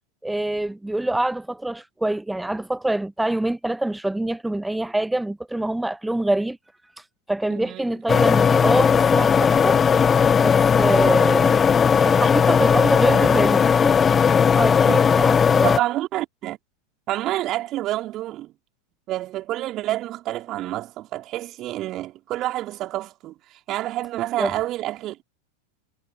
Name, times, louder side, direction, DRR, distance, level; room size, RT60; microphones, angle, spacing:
voice 1, 0.2-6.6 7.3-9.8 10.2-11.6 12.0-15.8 24.4-24.5, right 1 dB, 5° right, 1.1 m, -25 dB
voice 2, 7.5-8.0 15.6-16.6 17.1-18.5 19.1-23.3 23.7-25.2, right 15 dB, 35° right, 4.1 m, -28 dB
sound 1, 8.1-15.8, left 6 dB, 20° left, 0.7 m, -17 dB
figure-of-eight pair, 90°, 0 cm